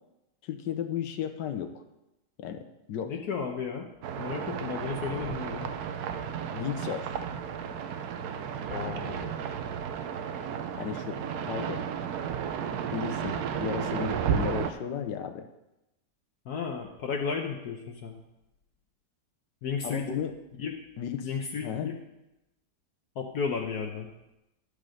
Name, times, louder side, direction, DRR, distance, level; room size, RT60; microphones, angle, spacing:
voice 1, 0.4-1.7 2.4-3.1 6.5-7.2 10.8-11.8 12.9-15.5 19.8-20.3 21.0-21.3 21.6-21.9, left 8 dB, 90° left, 7 dB, 1.4 m, -34 dB
voice 2, 3.0-3.9 4.2-5.7 8.7-9.4 16.4-18.2 19.6-20.0 20.6-20.7 21.2-22.0 23.2-24.1, left 6 dB, 70° left, 1 dB, 1.3 m, -33 dB
sound 1, 4.0-14.7, right 7 dB, 70° right, 1.1 m, -33 dB
11.0 x 5.0 x 6.4 m, 0.93 s
omnidirectional pair, 1.8 m